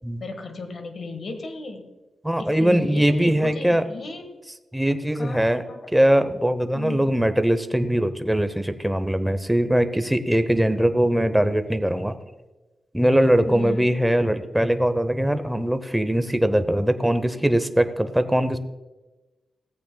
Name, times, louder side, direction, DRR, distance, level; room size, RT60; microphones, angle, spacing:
voice 1, 0.2-1.9 2.4-4.3 5.1-5.9 6.7-7.2 13.4-13.9, left 3 dB, 55° left, 6 dB, 1.4 m, -35 dB
voice 2, 2.2-3.8 4.7-5.6 5.9-12.2 12.9-18.6, right 1 dB, 5° right, 10 dB, 0.6 m, -21 dB
17.0 x 14.0 x 2.2 m, 1.1 s
wide cardioid pair, 160°, 0 cm